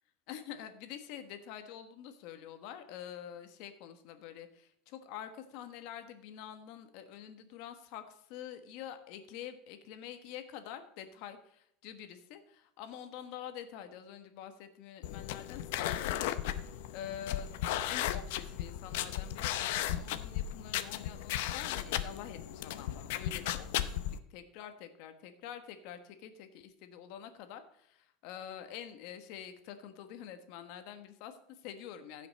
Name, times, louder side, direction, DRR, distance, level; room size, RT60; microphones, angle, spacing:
voice 1, 0.3-32.3, left 9 dB, 60° left, 9 dB, 1.3 m, -47 dB
sound 1, 15.0-24.2, left 12 dB, 75° left, 0.7 m, -35 dB
15.5 x 5.8 x 4.2 m, 0.71 s
supercardioid pair, 155°, 0 cm